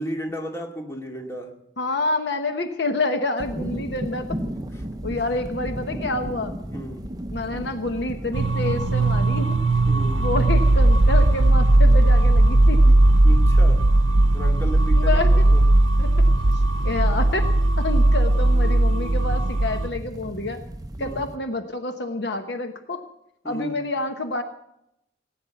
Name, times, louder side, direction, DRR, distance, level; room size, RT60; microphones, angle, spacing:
voice 1, 0.0-1.5 4.7-4.9 6.7-7.1 9.9-10.3 13.2-13.8 14.3-15.6 21.0-21.2 23.4-23.8, equal, 15° left, 2 dB, 2.2 m, -34 dB
voice 2, 1.8-4.4 5.0-6.5 7.3-9.6 10.2-12.9 15.0-15.4 16.0-16.1 16.8-17.5 17.8-20.6 21.0-23.0 23.4-24.4, left 2 dB, 60° left, 7 dB, 1.1 m, -28 dB
sound 1, 3.4-21.4, right 1 dB, 20° right, 0.7 m, -36 dB
sound 2, 8.3-19.9, right 2 dB, 75° right, 0.8 m, -17 dB
17.5 x 9.8 x 7.1 m, 0.79 s
head